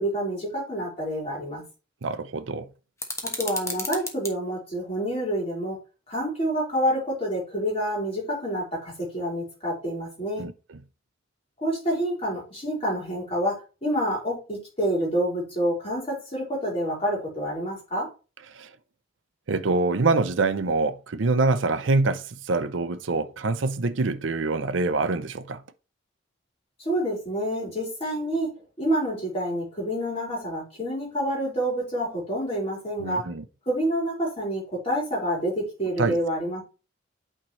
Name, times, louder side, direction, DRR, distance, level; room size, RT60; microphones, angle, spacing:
voice 1, 0.0-1.6 3.2-5.8 6.1-10.5 11.6-18.1 26.8-28.5 28.8-33.3 33.7-36.6, equal, 30° left, 4.2 m, -28 dB
voice 2, 2.0-2.7 10.4-10.5 18.5-18.7 19.5-25.6 33.0-33.4 36.0-36.2, right 3 dB, 70° right, 0.6 m, -25 dB
sound 1, 3.0-4.3, left 3 dB, 15° left, 1.1 m, -33 dB
8.7 x 4.5 x 3.2 m
head